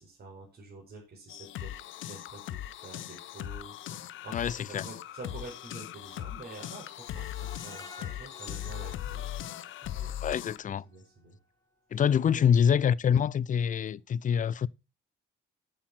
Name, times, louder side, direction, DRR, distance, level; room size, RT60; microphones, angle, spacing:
voice 1, 0.0-10.1 10.8-11.4 11.9-12.0 12.3-12.5, right 2 dB, 55° right, 5.0 m, -48 dB
sound 1, 1.3-10.6, left 12 dB, 80° left, 0.7 m, -39 dB
voice 2, 4.3-4.8 10.2-10.8 11.9-14.7, left 8 dB, 40° left, 0.5 m, -25 dB
Screech, 7.0-10.0 10.4-10.5 10.9-11.0, left 3 dB, 20° left, 2.1 m, -50 dB
8.6 x 7.8 x 5.7 m
cardioid pair, 90°, 20 cm